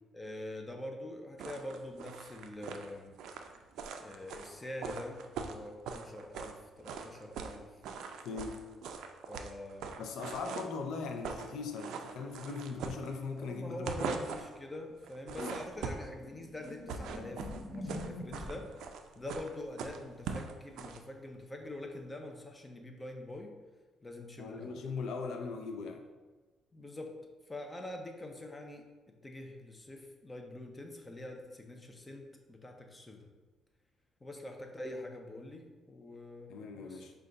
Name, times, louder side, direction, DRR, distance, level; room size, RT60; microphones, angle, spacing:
voice 1, 0.1-3.2 4.0-7.7 9.3-9.9 13.4-17.5 17.7-23.5 24.0-24.8 26.7-27.1 27.5-33.3 34.2-37.1, left 1 dB, 20° left, 3 dB, 0.6 m, -45 dB
sound 1, 1.4-6.6 6.9-7.6 7.8-10.8 11.1-11.5 11.8-13.4 13.7-14.6 15.0-16.2 16.6-21.0, right 6 dB, 80° right, 0.3 m, -41 dB
voice 2, 8.2-8.6 10.0-14.2 15.4-15.5 24.4-26.0 36.5-37.1, left 4 dB, 75° left, 5 dB, 0.4 m, -39 dB
sound 2, 15.9-18.8 21.6-21.8, left 1 dB, 50° left, 1.2 m, -44 dB
5.0 x 2.3 x 3.8 m, 1.3 s
cardioid pair, 110°, 0 cm